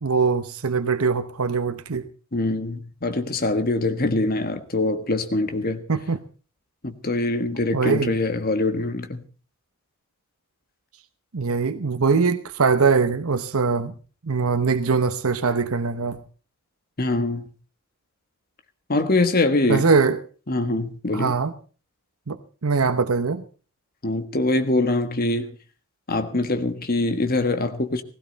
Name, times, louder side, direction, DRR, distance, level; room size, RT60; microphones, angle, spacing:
voice 1, 0.0-2.1 5.9-6.2 7.7-8.1 11.3-13.9 14.2-16.2 19.7-20.2 21.1-21.5 22.3-23.4, right 4 dB, 85° right, 0.9 m, -22 dB
voice 2, 2.3-5.8 6.8-9.2 17.0-17.5 18.9-19.9 20.5-21.4 24.0-25.5 26.1-28.0, left 2 dB, 45° left, 1.5 m, -23 dB
17.5 x 16.0 x 4.1 m
head